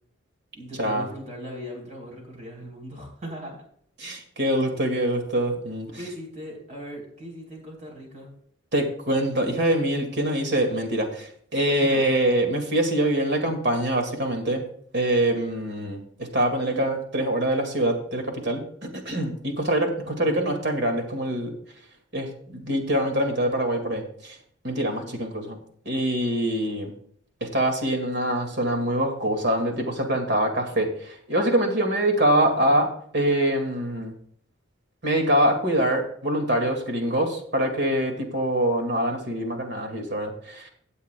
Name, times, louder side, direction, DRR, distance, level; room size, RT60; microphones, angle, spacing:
voice 1, 0.5-3.6 5.9-8.3 11.8-12.1 16.6-16.9 20.0-20.3 24.8-25.1, equal, 40° right, 0 dB, 3.9 m, -39 dB
voice 2, 4.0-5.9 8.7-14.6 14.9-21.5 22.1-24.4 24.6-25.6 25.9-26.9 27.4-34.1 35.0-40.7, right 1 dB, 55° right, 4 dB, 2.0 m, -24 dB
17.0 x 8.4 x 2.3 m, 0.63 s
head